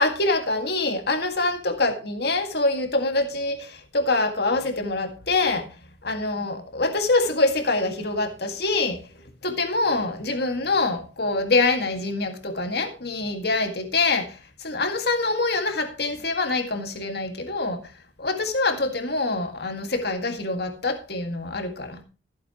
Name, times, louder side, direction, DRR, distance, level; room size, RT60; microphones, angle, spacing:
voice 1, 0.0-5.7 6.0-9.1 9.4-17.9 18.2-22.0, left 3 dB, 60° left, 1.9 m, -25 dB
15.0 x 8.6 x 3.0 m
head